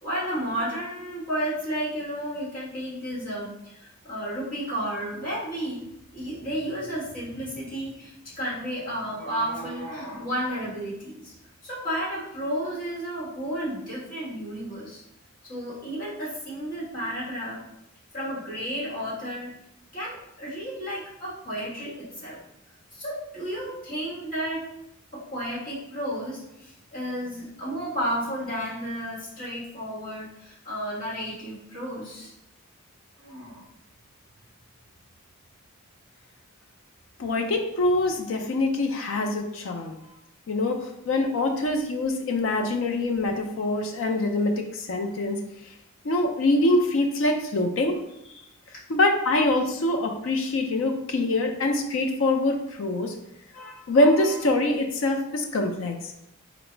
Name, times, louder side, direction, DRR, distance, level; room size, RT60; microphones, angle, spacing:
voice 1, 0.0-5.8 6.1-11.3 11.6-15.0 15.4-17.6 18.1-19.5 19.9-22.4 22.9-24.7 25.1-32.3 33.2-33.7 48.7-48.8, equal, 35° left, -9 dB, 1.4 m, -32 dB
voice 2, 37.2-40.0 40.5-45.4 46.0-48.0 48.9-53.1 53.5-56.0, left 2 dB, 60° left, 4 dB, 0.4 m, -24 dB
3.9 x 2.0 x 4.4 m, 0.83 s
head